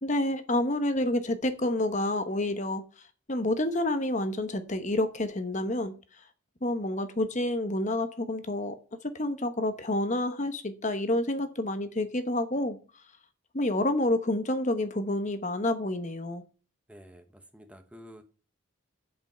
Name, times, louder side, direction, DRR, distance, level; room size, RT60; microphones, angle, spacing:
voice 1, 0.0-2.8 3.3-5.9 6.6-8.7 9.0-12.8 13.5-16.4, left 1 dB, 35° left, 1.0 m, -28 dB
voice 2, 16.9-18.2, equal, 5° right, 1.0 m, -50 dB
8.1 x 7.9 x 5.6 m
head